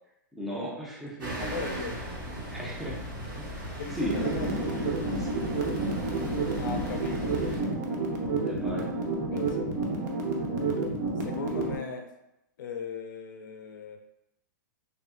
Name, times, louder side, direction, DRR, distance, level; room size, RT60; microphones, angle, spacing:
voice 1, 0.4-1.3 2.5-3.0 3.3-3.5 3.9-4.1 5.2-5.3 8.4-8.9, equal, ahead, -5 dB, 0.4 m, -35 dB
sound 1, 1.2-7.6, equal, 80° right, 1.0 m, -37 dB
voice 2, 1.4-2.0 3.7-4.8 6.6-7.4 9.3-9.7 11.2-12.1 12.6-14.0, left 5 dB, 80° left, 4 dB, 0.4 m, -38 dB
sound 2, 4.0-11.8, right 3 dB, 60° right, 0.6 m, -30 dB
3.3 x 2.1 x 2.4 m, 0.85 s
hypercardioid pair, 140°, 10 cm